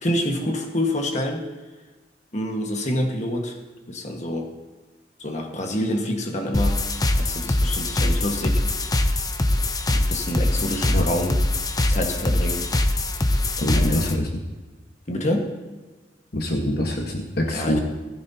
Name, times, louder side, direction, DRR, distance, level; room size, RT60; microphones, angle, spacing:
voice 1, 0.0-1.4 2.3-3.6 3.9-4.5 5.2-6.9 7.2-8.6 9.9-11.4 11.8-12.7 13.7-14.2 15.1-15.5 17.5-17.8, left 1 dB, 40° left, 2 dB, 1.5 m, -27 dB
sound 1, 6.5-14.1, left 1 dB, 20° left, 0.7 m, -22 dB
voice 2, 13.6-14.3 16.3-17.8, left 1 dB, 60° left, 1 dB, 1.2 m, -24 dB
16.0 x 14.5 x 2.8 m, 1.3 s
head